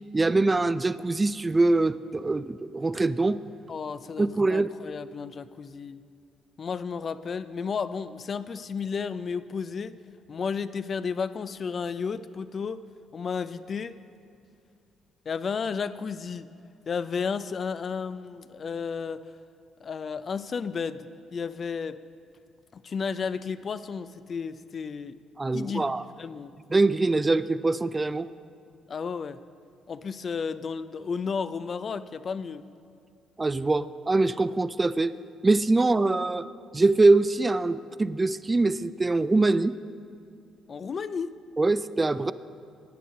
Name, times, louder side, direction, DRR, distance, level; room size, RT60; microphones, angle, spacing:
voice 1, 0.1-3.4 4.2-4.7 25.4-26.0 26.7-28.3 33.4-35.1 35.4-36.5 36.7-39.8 41.6-42.3, right 3 dB, 25° right, 15 dB, 0.3 m, -23 dB
voice 2, 3.7-6.0 6.6-10.0 10.3-12.8 13.1-13.9 15.3-16.5 16.9-19.2 19.8-22.0 22.7-25.2 25.5-25.9 26.2-26.5 28.9-29.4 29.9-32.6 40.7-41.3, left 5 dB, 45° left, 13 dB, 0.4 m, -32 dB
16.0 x 9.2 x 3.7 m, 2.5 s
hypercardioid pair, 45°, 0 cm